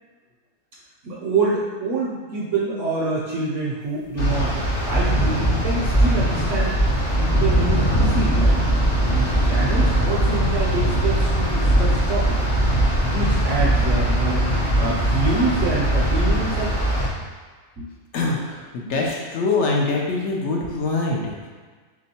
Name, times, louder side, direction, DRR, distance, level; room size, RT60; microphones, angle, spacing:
voice 1, 1.0-6.8 7.2-12.4 13.0-14.5 14.8-16.8 17.8-17.9 18.9-19.0, right 3 dB, 65° right, -5 dB, 0.9 m, -26 dB
sound 1, 4.2-17.1, right 1 dB, 35° left, 0.5 m, -20 dB
voice 2, 18.1-21.5, left 3 dB, 60° left, -1 dB, 0.8 m, -24 dB
3.3 x 2.9 x 4.1 m, 1.4 s
omnidirectional pair, 1.6 m